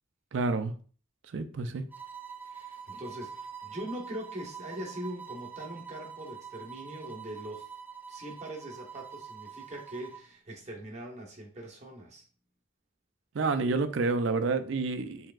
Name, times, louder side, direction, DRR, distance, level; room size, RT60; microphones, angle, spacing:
voice 1, 0.3-0.7 1.3-1.8 13.3-15.3, right 3 dB, 75° right, 0.4 m, -29 dB
sound 1, 1.9-10.3, right 6 dB, 10° right, 0.4 m, -45 dB
voice 2, 2.4-7.7 8.1-12.2, right 1 dB, 35° right, 1.0 m, -42 dB
4.6 x 3.4 x 2.4 m
head